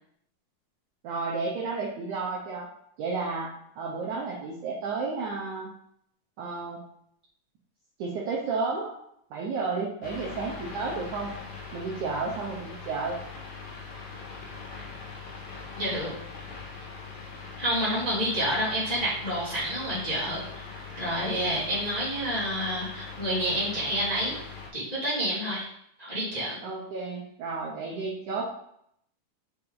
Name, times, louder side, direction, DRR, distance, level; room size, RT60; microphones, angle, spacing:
voice 1, 1.0-2.7 3.0-3.5 3.8-5.7 6.4-6.9 8.0-9.0 9.3-11.3 11.7-13.2 26.6-28.5, right 4 dB, 75° right, -3 dB, 1.8 m, -32 dB
sound 1, 10.0-24.7, left 4 dB, 60° left, 2.3 m, -41 dB
voice 2, 15.8-16.1 17.6-20.6 20.9-24.4 24.7-25.7 26.0-26.6, equal, 15° left, -9 dB, 1.4 m, -29 dB
6.0 x 5.0 x 3.9 m, 0.71 s
omnidirectional pair, 4.5 m